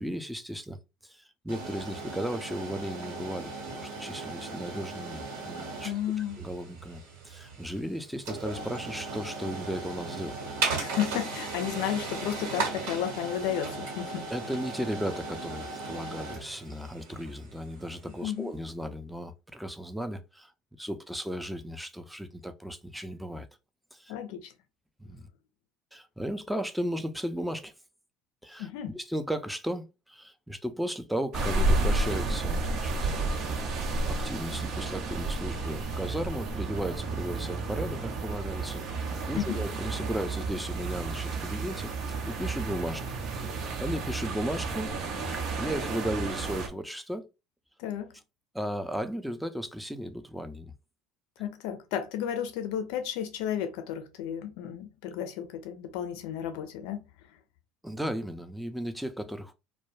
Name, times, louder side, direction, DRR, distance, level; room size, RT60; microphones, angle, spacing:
voice 1, 0.0-5.9 6.4-10.3 14.3-23.5 23.9-24.2 25.0-25.3 25.9-27.7 28.4-33.3 33.7-41.9 42.2-47.3 48.5-50.7 57.8-59.5, equal, 5° right, 0.5 m, -35 dB
sound 1, 1.5-18.3, right 3 dB, 75° right, 1.2 m, -37 dB
voice 2, 5.8-6.4 10.8-14.3 18.2-18.5 24.1-24.5 28.6-28.9 39.4-39.6 47.8-48.1 51.4-57.0, left 10 dB, 70° left, 0.4 m, -33 dB
sound 2, 31.3-46.7, right 3 dB, 55° right, 0.6 m, -31 dB
2.2 x 2.2 x 3.1 m
hypercardioid pair, 70°, 0 cm